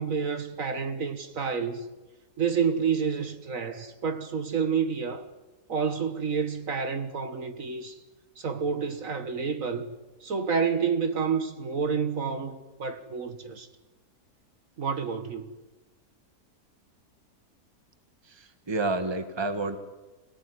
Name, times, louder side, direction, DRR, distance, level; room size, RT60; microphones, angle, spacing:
voice 1, 0.0-1.9 2.4-5.3 5.7-8.0 8.4-9.9 10.2-13.7 14.8-15.5, right 6 dB, 60° right, 1.8 m, -29 dB
voice 2, 18.3-19.8, right 2 dB, 15° right, 1.5 m, -30 dB
25.5 x 17.5 x 9.6 m
omnidirectional pair, 1.7 m